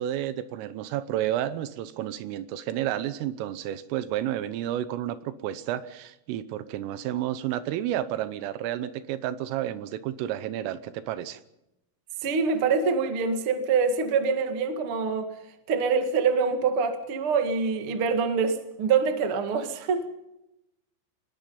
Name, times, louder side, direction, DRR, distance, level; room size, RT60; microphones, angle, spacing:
voice 1, 0.0-11.4, right 12 dB, 85° right, 13 dB, 3.5 m, -31 dB
voice 2, 12.2-15.3 15.7-20.1, right 5 dB, 65° right, 6 dB, 1.3 m, -25 dB
24.5 x 21.0 x 5.4 m, 0.88 s
omnidirectional pair, 5.8 m